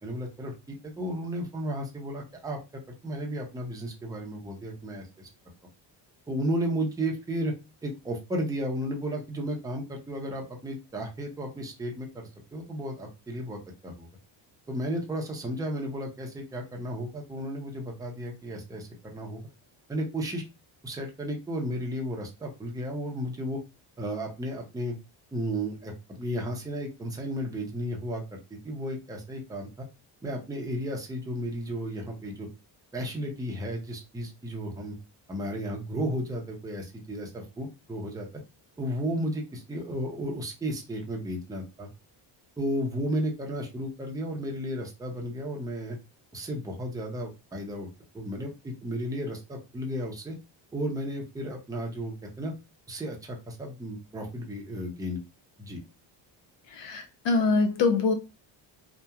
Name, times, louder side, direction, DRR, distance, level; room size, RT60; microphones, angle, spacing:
voice 1, 0.0-5.3 6.3-7.5 7.8-14.1 14.7-19.4 19.9-20.4 20.8-23.6 24.0-25.0 25.3-28.4 28.6-29.9 30.2-32.5 32.9-35.0 35.3-38.3 38.8-41.9 42.6-46.0 46.3-47.9 48.1-50.3 50.7-52.5 52.9-55.2 55.6-55.8, equal, 10° right, 0.5 m, -33 dB
voice 2, 56.7-58.1, left 4 dB, 65° left, 0.5 m, -24 dB
2.8 x 2.1 x 2.3 m
cardioid pair, 115°, 48 cm